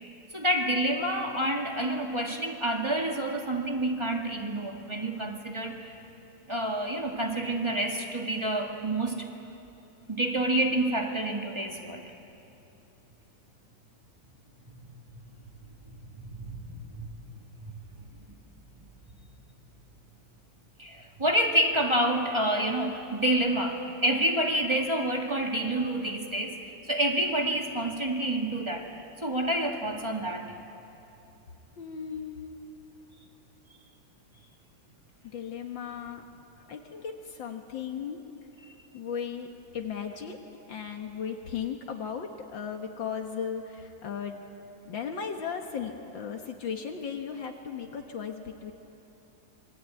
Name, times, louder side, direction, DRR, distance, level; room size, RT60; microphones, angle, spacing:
voice 1, 0.3-6.0 6.5-9.3 10.1-12.1 15.9-17.2 18.8-18.9 20.8-28.9 29.2-30.5, right 1 dB, 15° right, 1 dB, 2.0 m, -28 dB
voice 2, 31.8-32.6 35.3-36.2 36.7-38.2 38.9-40.4 40.7-44.4 44.9-48.7, left 7 dB, 70° left, 3 dB, 2.1 m, -36 dB
26.5 x 22.5 x 9.0 m, 2.8 s
omnidirectional pair, 2.2 m